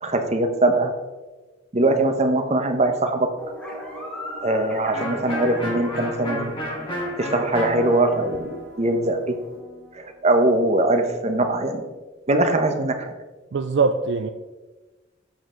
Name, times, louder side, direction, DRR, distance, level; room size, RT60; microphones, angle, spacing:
voice 1, 0.0-0.9 1.7-3.3 4.4-6.5 7.2-9.4 9.9-11.9 12.3-13.1, right 2 dB, 35° right, 6 dB, 0.9 m, -21 dB
sound 1, 3.4-9.6, equal, 5° left, 1.8 m, -39 dB
Electric guitar, 4.9-10.5, equal, 25° left, 2.0 m, -32 dB
voice 2, 13.5-14.3, right 4 dB, 60° right, 7 dB, 0.4 m, -22 dB
7.8 x 7.5 x 3.8 m, 1.2 s
head